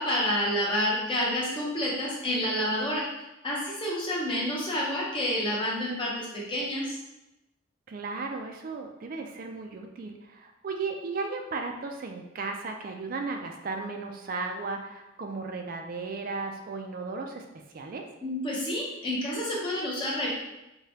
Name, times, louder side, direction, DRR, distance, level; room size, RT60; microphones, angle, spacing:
voice 1, 0.0-3.1 3.4-7.0 18.2-20.3, left 1 dB, 25° left, -4 dB, 0.7 m, -29 dB
voice 2, 7.9-17.5 17.7-18.1, right 4 dB, 45° right, 3 dB, 0.3 m, -35 dB
4.8 x 2.2 x 2.8 m, 0.96 s
head